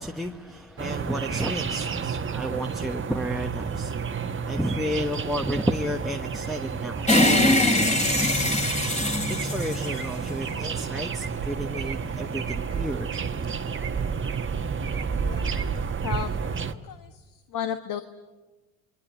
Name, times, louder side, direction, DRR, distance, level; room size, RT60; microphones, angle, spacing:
voice 1, 0.0-3.9 4.4-7.0 9.1-13.1 13.4-13.5, equal, ahead, 2 dB, 1.2 m, -32 dB
sound 1, 0.8-16.7, right 6 dB, 30° right, 1.4 m, -30 dB
sound 2, 7.1-10.6, left 1 dB, 15° left, 3.6 m, -22 dB
voice 2, 14.9-15.6 16.0-16.3 16.7-18.0, left 8 dB, 55° left, 9 dB, 1.4 m, -34 dB
28.5 x 22.0 x 8.3 m, 1.2 s
supercardioid pair, 80°, 40 cm